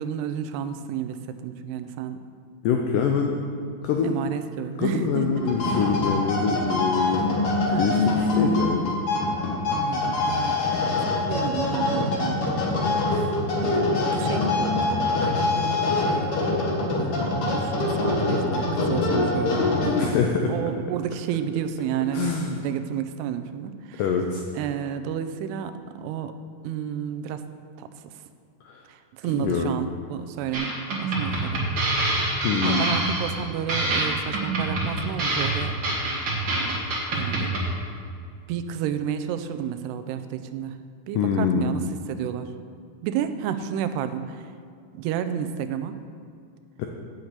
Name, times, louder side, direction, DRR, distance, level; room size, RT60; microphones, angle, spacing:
voice 1, 0.0-2.2 4.0-5.5 7.0-7.2 7.7-8.0 9.7-12.5 13.1-13.3 13.6-24.0 24.6-26.4 26.6-27.5 27.8-28.1 28.9-31.7 32.0-32.1 32.5-35.8 36.5-37.5 38.5-40.8 41.1-42.5 43.0-44.5 44.9-46.0, right 9 dB, 90° right, 10 dB, 2.6 m, -31 dB
voice 2, 2.6-3.4 3.8-4.2 4.8-7.2 7.8-8.9 13.1-13.2 19.9-20.5 22.1-22.6 24.0-24.4 28.7-28.8 29.4-29.7 32.4-33.0 41.2-41.7 46.8-46.9, left 6 dB, 85° left, 2 dB, 1.9 m, -25 dB
sound 1, 5.4-20.3, left 2 dB, 55° left, 1.6 m, -24 dB
sound 2, 30.5-37.7, right 2 dB, 45° right, 1.6 m, -26 dB
7.8 x 7.2 x 8.1 m, 2.3 s
omnidirectional pair, 4.7 m